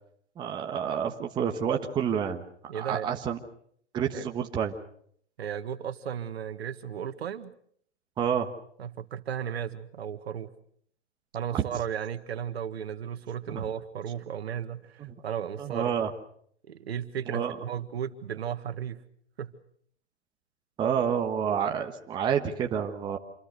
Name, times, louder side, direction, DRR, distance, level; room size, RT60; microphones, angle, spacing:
voice 1, 0.4-2.4 2.7-3.4 3.9-4.7 8.2-8.5 11.5-11.6 13.5-13.6 15.0-15.1 15.6-16.1 17.3-17.6 20.8-23.2, right 8 dB, 15° right, 3 dB, 1.3 m, -28 dB
voice 2, 2.7-3.1 4.1-4.3 5.4-7.5 8.8-10.5 11.3-15.9 16.7-19.0 19.4-19.5, right 8 dB, 65° right, 10 dB, 1.9 m, -35 dB
27.5 x 21.5 x 6.7 m, 0.65 s
hypercardioid pair, 145°, 34 cm